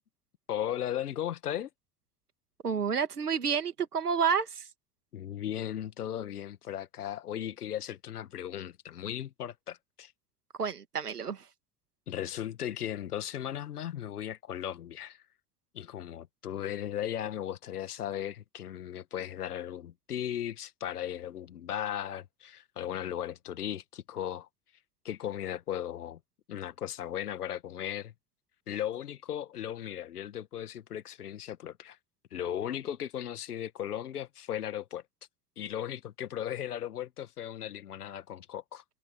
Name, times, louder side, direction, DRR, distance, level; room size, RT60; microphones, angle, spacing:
voice 1, 0.5-1.7 5.1-10.1 12.1-15.2 15.7-24.5 25.1-26.2 26.5-28.1 28.7-32.0 32.3-35.0 35.6-38.8, left 10 dB, 80° left, 2.0 m, -36 dB
voice 2, 2.6-4.7 10.6-11.5, right 6 dB, 85° right, 2.5 m, -29 dB
figure-of-eight pair, 55°, 45 cm